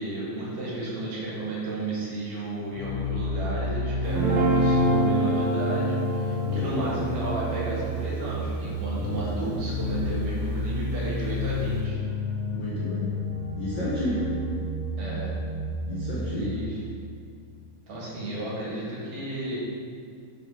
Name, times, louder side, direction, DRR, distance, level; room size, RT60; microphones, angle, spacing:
voice 1, 0.0-12.0 15.0-15.3 16.2-16.8 17.9-19.6, right 2 dB, 70° right, -7 dB, 3.3 m, -33 dB
sound 1, 2.7-16.4, left 2 dB, 50° left, 1.1 m, -30 dB
Guitar, 4.1-10.4, right 3 dB, 85° right, 2.6 m, -28 dB
voice 2, 6.4-7.1 9.0-9.6 12.5-13.1 13.5-14.3 15.9-16.6, left 2 dB, 75° left, -7 dB, 1.0 m, -31 dB
6.5 x 5.2 x 5.0 m, 2.2 s
omnidirectional pair, 3.8 m